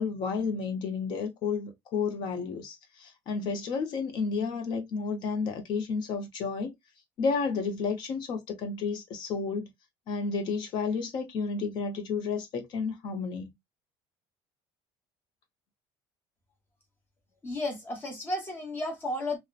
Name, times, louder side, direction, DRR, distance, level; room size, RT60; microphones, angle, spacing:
voice 1, 0.0-6.7 7.2-9.7 10.1-13.5, left 5 dB, 45° left, 0.6 m, -31 dB
voice 2, 17.4-19.4, left 1 dB, 20° left, 0.9 m, -33 dB
2.7 x 2.1 x 2.3 m
cardioid pair, 175°, 10 cm